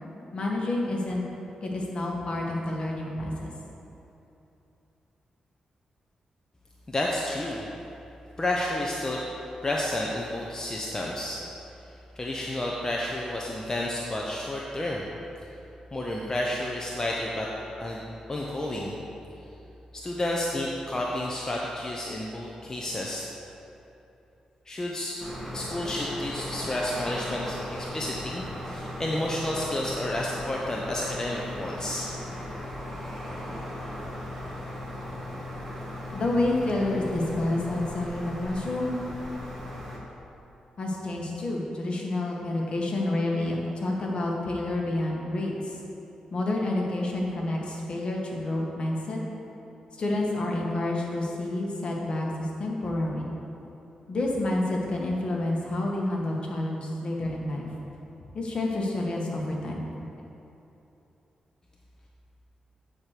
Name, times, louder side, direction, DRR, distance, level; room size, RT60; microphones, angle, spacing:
voice 1, 0.3-1.2 1.6-3.5 36.1-38.9 40.8-45.8 46.3-49.2 50.0-53.3 54.1-57.7 58.3-59.9, left 2 dB, 50° left, -2 dB, 1.6 m, -29 dB
voice 2, 6.9-7.6 8.4-9.2 9.6-11.4 12.1-15.1 15.9-17.5 17.8-18.0 18.3-18.9 19.9-23.2 24.7-25.2 25.5-32.1, left 1 dB, 25° left, -3 dB, 0.9 m, -31 dB
sound 1, 25.2-40.0, left 1 dB, 10° left, 2.0 m, -37 dB
8.4 x 4.5 x 6.7 m, 3.0 s
cardioid pair, 70°, 2 cm